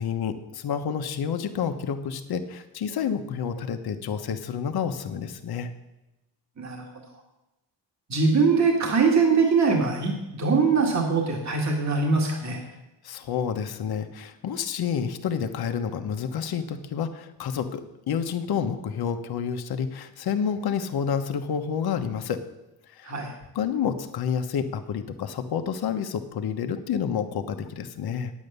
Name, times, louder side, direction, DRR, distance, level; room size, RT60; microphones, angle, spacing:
voice 1, 0.0-5.7 13.0-17.8 18.1-22.4 22.9-23.1 23.5-28.3, left 7 dB, 55° left, 7 dB, 1.2 m, -29 dB
voice 2, 6.6-6.9 8.1-12.6 23.0-23.3, right 4 dB, 40° right, 1 dB, 2.1 m, -22 dB
9.2 x 8.5 x 6.8 m, 0.96 s
cardioid pair, 90°, 43 cm